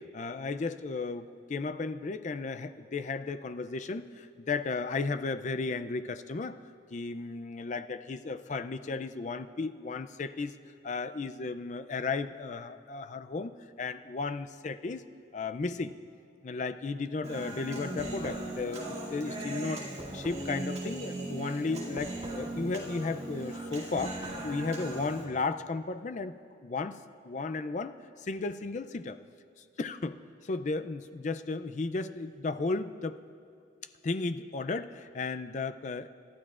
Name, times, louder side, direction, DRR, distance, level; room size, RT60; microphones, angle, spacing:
voice 1, 0.1-6.6 6.9-10.5 10.8-13.5 13.8-15.0 15.3-15.9 16.4-19.8 20.1-24.2 24.4-26.4 26.6-27.0 27.2-29.2 29.8-30.1 30.4-33.2 34.0-36.1, left 3 dB, 40° left, 10 dB, 0.4 m, -34 dB
Human voice, 17.2-25.2, right 1 dB, 35° right, 2.3 m, -38 dB
27.5 x 12.0 x 2.4 m, 2.2 s
head